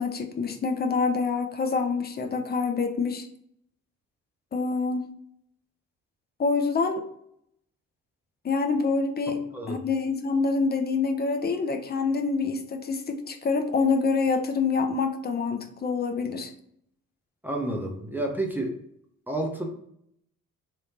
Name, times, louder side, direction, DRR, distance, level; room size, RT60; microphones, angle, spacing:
voice 1, 0.0-3.3 4.5-5.1 6.4-7.0 8.4-9.4 9.7-16.5, left 4 dB, 25° left, 6 dB, 0.6 m, -26 dB
voice 2, 17.4-18.8 19.3-19.7, right 1 dB, 5° right, 0 dB, 0.8 m, -30 dB
3.3 x 2.8 x 4.1 m, 0.71 s
figure-of-eight pair, 45°, 44 cm